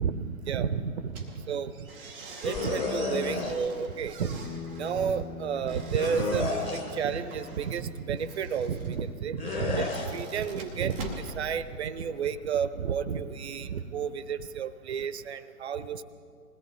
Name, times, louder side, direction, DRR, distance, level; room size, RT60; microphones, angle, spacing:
voice 1, 0.0-1.9 2.4-4.4 4.8-16.0, right 7 dB, 45° right, 14 dB, 0.8 m, -31 dB
sound 1, 1.1-12.2, right 2 dB, 5° right, 0.4 m, -45 dB
sound 2, 2.4-3.5 6.0-7.0 9.4-10.1, left 3 dB, 10° left, 1.2 m, -31 dB
Bass guitar, 4.4-8.7, left 5 dB, 60° left, 5.2 m, -44 dB
21.0 x 17.0 x 4.0 m, 2.3 s
figure-of-eight pair, 120°, 46 cm